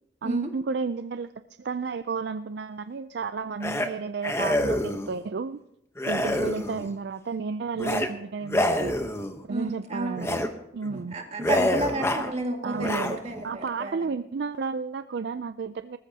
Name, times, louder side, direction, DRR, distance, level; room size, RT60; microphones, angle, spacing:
voice 1, 0.2-1.3 1.6-5.6 6.1-8.9 9.5-10.4 10.7-11.2 12.6-13.2 13.4-16.0, right 5 dB, 55° right, 12 dB, 0.4 m, -32 dB
sound 1, 3.6-3.9 4.2-5.1 6.0-6.9 7.8-8.1 8.5-9.4 10.2-10.5 10.8-11.0 11.4-12.3 12.7-13.4, left 1 dB, 15° left, 0.9 m, -27 dB
voice 2, 9.5-10.4 10.9-14.1, right 2 dB, 35° right, 2 dB, 2.0 m, -32 dB
19.5 x 14.5 x 2.8 m, 0.86 s
head